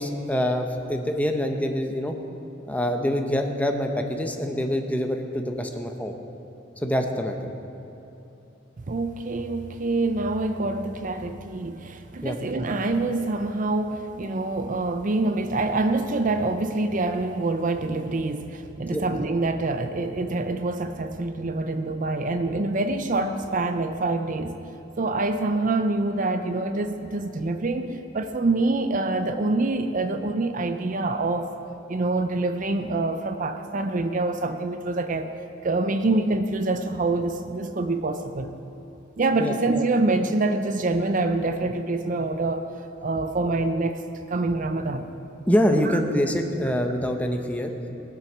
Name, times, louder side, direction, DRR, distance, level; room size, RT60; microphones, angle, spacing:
voice 1, 0.0-2.2 2.7-6.1 6.8-7.4 12.2-12.4 18.9-19.0 39.4-39.6 45.5-47.7, equal, 10° left, 4 dB, 0.8 m, -25 dB
voice 2, 8.9-24.6 25.0-31.5 31.9-35.3 35.6-38.6 39.2-42.7 43.0-44.0 44.3-45.1, right 2 dB, 40° right, 8 dB, 0.5 m, -26 dB
19.5 x 7.7 x 6.1 m, 2.9 s
head